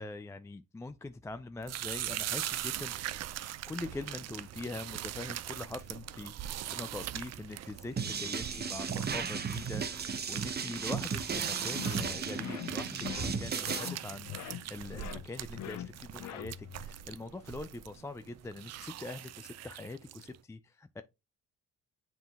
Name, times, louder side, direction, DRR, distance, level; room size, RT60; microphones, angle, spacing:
voice 1, 0.0-3.0 3.7-21.0, left 2 dB, 10° left, 0.3 m, -43 dB
sound 1, 1.6-20.4, right 12 dB, 60° right, 0.5 m, -41 dB
sound 2, 8.0-13.9, right 5 dB, 35° right, 0.8 m, -35 dB
sound 3, 11.7-16.9, left 11 dB, 65° left, 0.6 m, -43 dB
7.2 x 3.8 x 3.4 m
cardioid pair, 90°, 30 cm